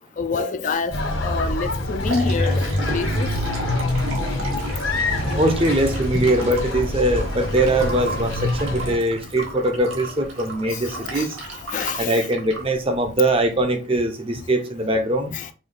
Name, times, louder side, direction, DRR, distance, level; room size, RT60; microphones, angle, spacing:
voice 1, 0.2-1.0 1.2-3.3 10.7-10.8 11.2-11.3 11.7-12.3 15.3-15.5, left 4 dB, 40° left, 0.4 m, -27 dB
sound 1, 0.9-9.0, left 1 dB, 70° left, 1.4 m, -25 dB
Liquid, 1.8-13.6, right 1 dB, 80° right, 1.3 m, -34 dB
voice 2, 5.3-11.4 12.0-15.3, right 1 dB, 25° right, 0.6 m, -21 dB
5.1 x 2.3 x 3.8 m
head